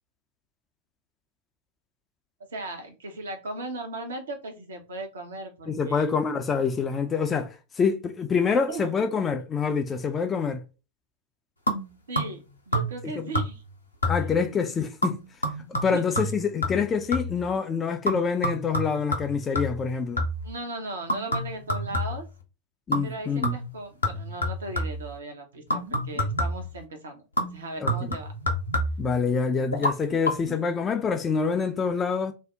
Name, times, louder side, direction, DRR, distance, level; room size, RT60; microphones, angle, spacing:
voice 1, 2.5-6.1 8.7-8.9 12.1-12.4 12.7-13.6 15.9-16.0 20.4-22.3 23.0-27.2 27.5-28.3 30.1-30.2 30.5-30.6, right 2 dB, 65° right, 0.8 m, -37 dB
voice 2, 5.7-10.6 13.0-13.3 14.1-15.2 15.7-20.2 22.9-23.5 27.8-28.1 29.0-32.3, left 5 dB, 20° left, 0.4 m, -26 dB
sound 1, 11.7-12.5 12.7-13.1 13.3-13.7 14.0-14.5 15.0-17.4 18.1-20.5 21.1-22.4 22.9-23.2 23.4-25.1 25.7-26.7 27.4-29.1 29.7-29.9 30.2-30.3, equal, 80° left, 0.7 m, -29 dB
2.6 x 2.0 x 3.4 m
figure-of-eight pair, 90°, 0 cm